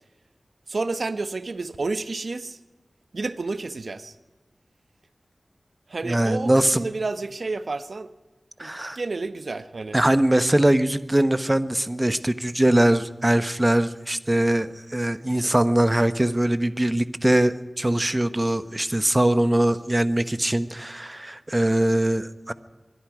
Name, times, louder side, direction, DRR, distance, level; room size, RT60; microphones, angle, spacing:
voice 1, 0.7-2.6 3.1-4.1 5.9-8.1 8.6-8.7 9.0-10.0, right 3 dB, 70° right, 12 dB, 1.0 m, -30 dB
voice 2, 6.0-6.8 8.6-9.0 9.9-22.5, right 1 dB, 20° right, 12 dB, 1.1 m, -22 dB
25.5 x 21.5 x 5.0 m, 1.2 s
wide cardioid pair, 70°, 0 cm